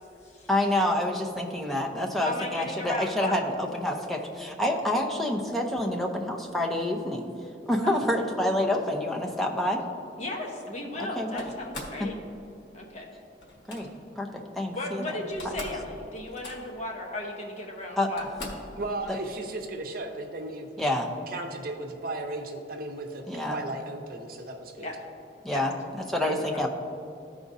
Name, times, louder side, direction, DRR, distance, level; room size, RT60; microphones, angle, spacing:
voice 1, 0.5-7.3 7.7-9.8 11.0-11.5 12.0-12.1 13.7-13.9 14.2-14.3 14.5-15.2 18.0-18.1 20.8-21.1 23.3-23.6 25.4-25.7 26.1-26.7, left 1 dB, ahead, 0 dB, 0.7 m, -27 dB
voice 2, 2.2-3.4 7.8-8.0 10.2-12.1 12.7-13.1 14.7-18.2 21.7-21.8 24.8-25.0 25.5-25.6 26.2-26.6, left 1 dB, 40° left, 1 dB, 1.0 m, -35 dB
Slam, 11.4-12.0 13.4-13.8 14.9-15.0 15.2-15.9 16.1-16.8 17.6-17.7 18.2-18.7, left 1 dB, 85° left, 1.3 m, -41 dB
voice 3, 18.8-20.9 21.3-23.2 23.5-24.9, right 2 dB, 55° right, 3 dB, 0.7 m, -35 dB
13.5 x 4.9 x 2.7 m, 2.7 s
head